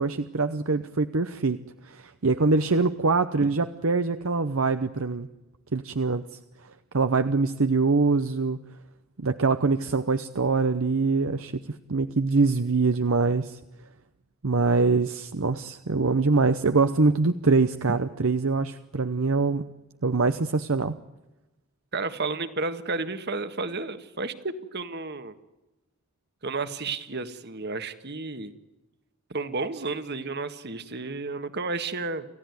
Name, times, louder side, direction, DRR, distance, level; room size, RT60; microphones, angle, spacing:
voice 1, 0.0-1.6 1.8-5.3 5.7-6.4 6.9-8.6 9.2-11.6 11.9-13.6 14.4-19.7 20.0-21.0, right 3 dB, 65° right, 10 dB, 0.8 m, -24 dB
voice 2, 21.9-25.3 26.4-28.5 29.3-32.3, right 3 dB, 50° right, 11 dB, 1.7 m, -32 dB
28.5 x 15.0 x 9.5 m, 1.0 s
head